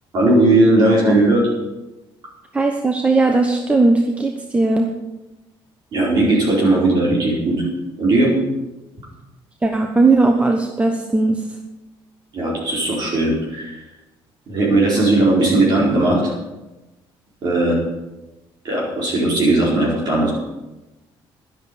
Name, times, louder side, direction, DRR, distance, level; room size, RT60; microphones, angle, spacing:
voice 1, 0.1-1.4 5.9-7.6 8.0-8.3 12.3-13.8 14.5-16.3 17.4-17.7 18.6-20.3, right 2 dB, 45° right, -5 dB, 4.7 m, -17 dB
voice 2, 2.5-4.9 9.6-11.5, right 3 dB, 15° right, 4 dB, 1.0 m, -17 dB
11.5 x 10.5 x 7.0 m, 1.0 s
cardioid pair, 150°, 10 cm